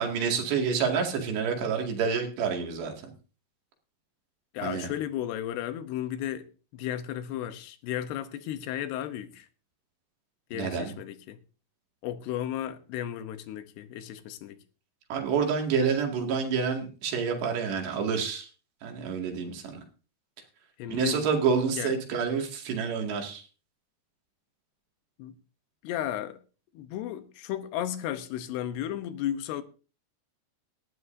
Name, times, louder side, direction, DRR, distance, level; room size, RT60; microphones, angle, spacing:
voice 1, 0.0-2.9 4.6-4.9 10.5-11.0 15.1-18.5 18.8-19.8 20.9-23.4, right 6 dB, 80° right, 4.3 m, -28 dB
voice 2, 4.5-6.5 6.7-9.5 10.5-11.4 12.0-14.6 20.8-21.3 21.8-21.9 25.2-25.3 25.8-26.4 26.7-29.6, left 11 dB, 80° left, 2.9 m, -34 dB
19.0 x 12.5 x 2.6 m
omnidirectional pair, 4.8 m